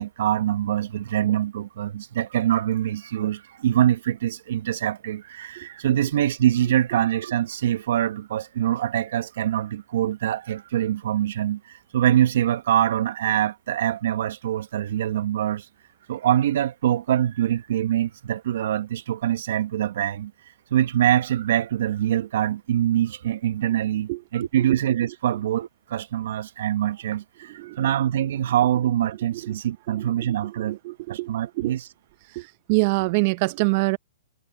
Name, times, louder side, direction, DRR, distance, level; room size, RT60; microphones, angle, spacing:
voice 1, 0.0-15.7 16.1-20.3 20.7-30.8 31.1-31.8, right 11 dB, 65° right, 1.4 m, -24 dB
voice 2, 29.9-31.7 32.3-34.0, right 26 dB, 45° right, 0.7 m, -26 dB
hypercardioid pair, 130°, 0 cm